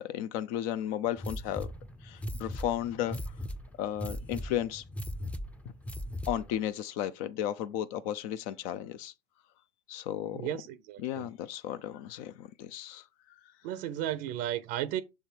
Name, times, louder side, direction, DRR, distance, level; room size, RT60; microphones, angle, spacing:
voice 1, 0.0-1.7 2.0-3.2 3.8-4.8 6.3-9.1 9.9-10.5 11.0-13.0, left 11 dB, 60° left, 0.5 m, -34 dB
sound 1, 1.2-6.6, equal, 5° left, 0.5 m, -39 dB
voice 2, 10.3-11.3 13.6-15.0, right 12 dB, 55° right, 0.6 m, -34 dB
6.5 x 3.5 x 4.5 m
hypercardioid pair, 110°, 21 cm